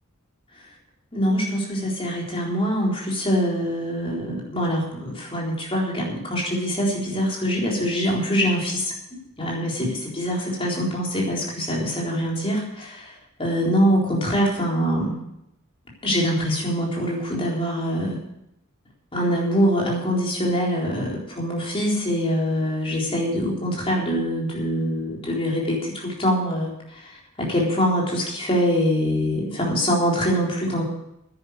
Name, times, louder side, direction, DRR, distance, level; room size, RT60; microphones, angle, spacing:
voice 1, 1.1-8.9 9.4-13.1 13.4-15.2 16.0-18.2 19.1-30.8, equal, 25° left, -3 dB, 4.0 m, -24 dB
10.5 x 9.8 x 8.1 m, 0.83 s
head